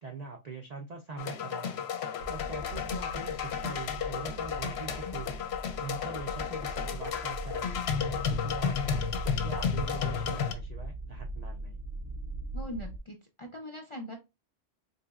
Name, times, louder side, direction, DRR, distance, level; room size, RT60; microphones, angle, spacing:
voice 1, 0.0-1.8 2.3-5.3 5.8-9.0 9.4-11.8, right 4 dB, 65° right, 2 dB, 0.4 m, -42 dB
sound 1, 1.2-10.5, left 7 dB, 65° left, 0.8 m, -33 dB
sound 2, 2.2-13.0, right 2 dB, 85° right, 1.1 m, -40 dB
voice 2, 12.5-14.2, left 1 dB, 45° left, 4 dB, 0.4 m, -41 dB
4.0 x 3.0 x 2.3 m, 0.25 s
omnidirectional pair, 1.3 m